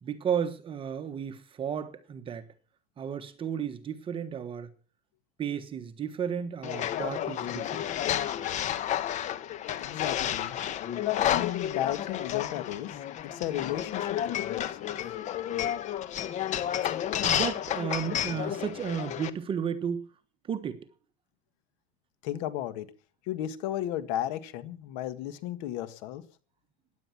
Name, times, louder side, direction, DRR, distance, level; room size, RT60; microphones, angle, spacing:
voice 1, 0.0-2.5 3.0-4.7 5.4-7.9 17.2-20.0 20.5-20.8, right 7 dB, 30° right, 1.3 m, -33 dB
sound 1, 6.6-19.3, left 11 dB, 40° left, 1.2 m, -31 dB
voice 2, 9.7-10.6 11.2-13.0 13.2-15.0 22.2-22.9 23.3-26.2, left 12 dB, 70° left, 1.9 m, -34 dB
16.0 x 10.5 x 5.9 m
supercardioid pair, 135°, 19 cm